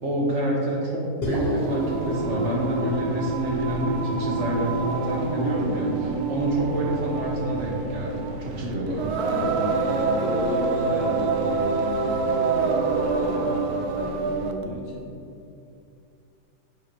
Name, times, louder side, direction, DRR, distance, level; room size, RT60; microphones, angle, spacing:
voice 1, 0.0-9.2, right 1 dB, 40° right, -3 dB, 1.9 m, -28 dB
sound 1, 1.2-5.6, left 1 dB, 35° left, 1.5 m, -33 dB
Singing, 1.4-14.6, right 4 dB, 65° right, 1.2 m, -26 dB
voice 2, 9.3-15.1, left 2 dB, 90° left, -2 dB, 2.0 m, -34 dB
11.5 x 7.6 x 3.2 m, 2.6 s
omnidirectional pair, 2.0 m